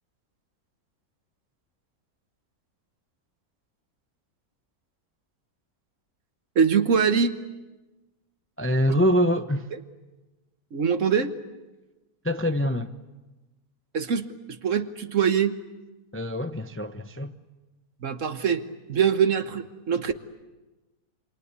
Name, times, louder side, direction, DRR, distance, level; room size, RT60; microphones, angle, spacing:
voice 1, 6.5-7.3 9.7-9.8 10.7-11.3 13.9-15.6 18.0-20.1, right 7 dB, 55° right, 1.5 m, -23 dB
voice 2, 8.6-9.7 12.2-12.9 16.1-17.3, equal, 10° left, 0.6 m, -24 dB
27.5 x 26.0 x 8.3 m
omnidirectional pair, 1.6 m